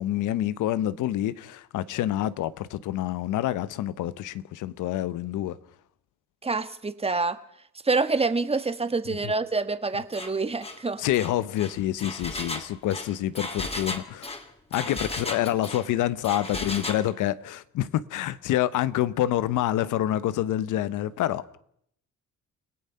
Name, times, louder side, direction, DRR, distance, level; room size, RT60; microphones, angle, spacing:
voice 1, 0.0-5.6 9.2-9.3 11.0-14.3 14.7-21.6, left 13 dB, 85° left, 1.0 m, -27 dB
voice 2, 6.4-7.4 7.8-11.0, right 3 dB, 20° right, 1.5 m, -26 dB
Engine, 10.1-10.3 10.6-10.8 11.1-15.9 16.2-17.0, left 2 dB, 20° left, 2.7 m, -35 dB
29.5 x 17.5 x 5.7 m
cardioid pair, 90°, 30 cm